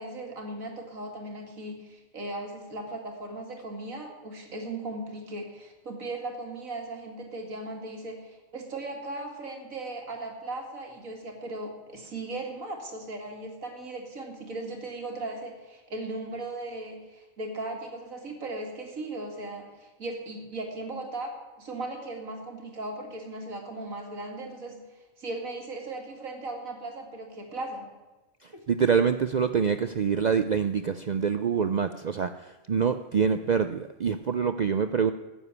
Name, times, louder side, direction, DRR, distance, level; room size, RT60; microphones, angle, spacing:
voice 1, 0.0-24.8 25.2-27.9 28.5-28.6, right 2 dB, 85° right, 3 dB, 2.7 m, -37 dB
voice 2, 28.4-35.1, right 6 dB, 70° right, 10 dB, 0.4 m, -26 dB
14.5 x 7.2 x 9.7 m, 1.1 s
omnidirectional pair, 1.4 m